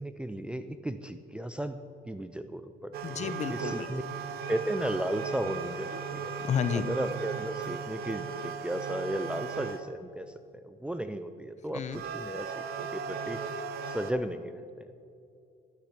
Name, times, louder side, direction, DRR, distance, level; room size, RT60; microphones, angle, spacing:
voice 1, 0.0-1.8 2.0-4.0 4.5-6.3 6.7-13.4 13.9-14.9, right 1 dB, 5° right, 9 dB, 0.4 m, -35 dB
sound 1, 2.9-9.8 11.7-14.1, right 6 dB, 65° right, 0.8 m, -37 dB
voice 2, 3.0-4.0 6.4-6.8 11.7-12.0, left 7 dB, 45° left, 12 dB, 0.7 m, -31 dB
11.5 x 8.5 x 5.9 m, 2.5 s
cardioid pair, 110°, 17 cm